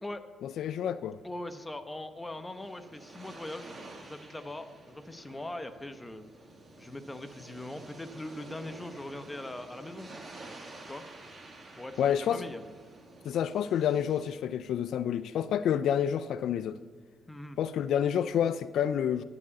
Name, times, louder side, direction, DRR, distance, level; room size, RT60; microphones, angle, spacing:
voice 1, 0.4-1.2 12.0-12.4 13.2-16.8 17.6-19.2, left 9 dB, 75° left, 13 dB, 0.3 m, -28 dB
voice 2, 1.2-3.7 4.0-6.2 6.8-10.2 10.8-11.0 11.8-12.6 17.3-17.6, left 1 dB, 15° left, 8 dB, 0.9 m, -41 dB
sound 1, 2.1-14.3, right 2 dB, 35° right, 2.3 m, -50 dB
11.5 x 4.9 x 8.3 m, 1.4 s
cardioid pair, 90°, 0 cm